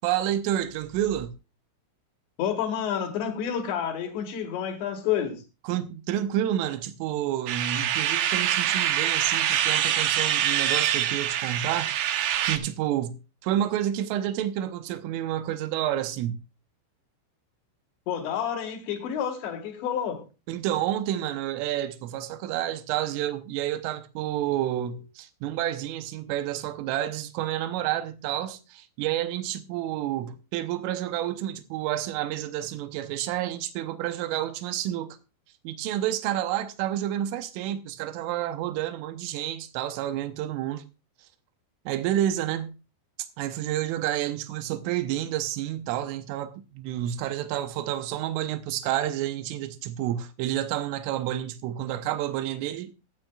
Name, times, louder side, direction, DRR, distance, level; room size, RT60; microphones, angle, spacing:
voice 1, 0.0-1.3 5.7-11.9 12.4-16.4 20.5-35.2 35.7-40.8 41.9-42.7 43.4-52.9, right 12 dB, 90° right, 3.4 m, -29 dB
voice 2, 2.4-5.4 18.1-20.3, left 8 dB, 70° left, 3.8 m, -29 dB
sound 1, 7.5-12.6, right 10 dB, 75° right, 2.3 m, -25 dB
23.5 x 9.1 x 2.3 m
omnidirectional pair, 5.6 m